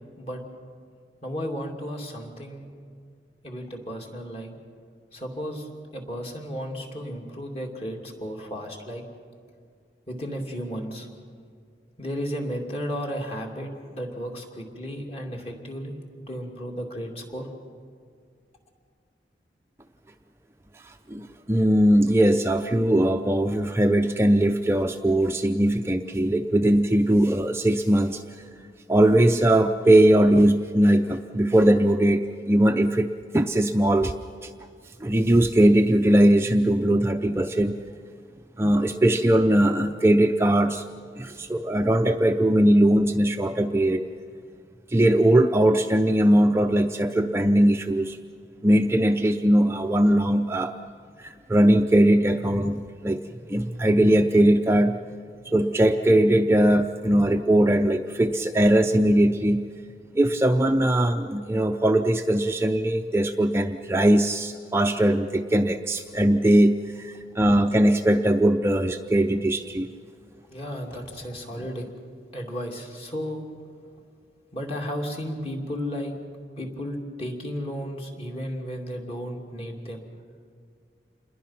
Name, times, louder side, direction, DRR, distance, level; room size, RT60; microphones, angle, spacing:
voice 1, 1.2-2.8 3.4-4.5 5.1-9.0 10.1-11.1 12.0-15.9 16.3-17.5 70.5-71.8 72.3-73.4 74.5-76.1 76.6-80.0, equal, 35° left, 1 dB, 2.8 m, -34 dB
voice 2, 21.1-28.2 28.9-34.1 34.4-34.5 35.0-37.8 38.6-40.8 41.2-44.0 44.9-48.2 48.6-50.7 51.2-53.2 53.5-55.0 55.5-59.6 60.2-69.9, right 1 dB, 15° right, 5 dB, 0.5 m, -20 dB
28.0 x 21.5 x 5.9 m, 2.2 s
head